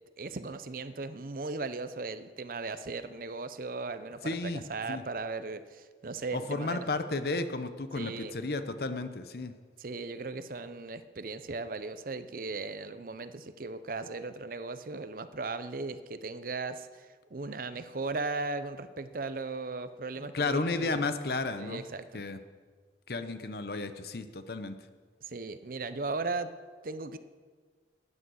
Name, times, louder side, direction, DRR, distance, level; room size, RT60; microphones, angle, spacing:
voice 1, 0.2-6.9 7.9-8.4 9.8-21.0 21.6-22.2 25.2-26.5 26.8-27.2, right 3 dB, 50° right, 11 dB, 0.7 m, -37 dB
voice 2, 4.2-4.6 4.9-5.0 6.3-9.5 20.2-21.8 22.1-22.4 23.1-24.8, left 3 dB, 60° left, 10 dB, 0.8 m, -33 dB
13.5 x 9.6 x 6.4 m, 1.5 s
head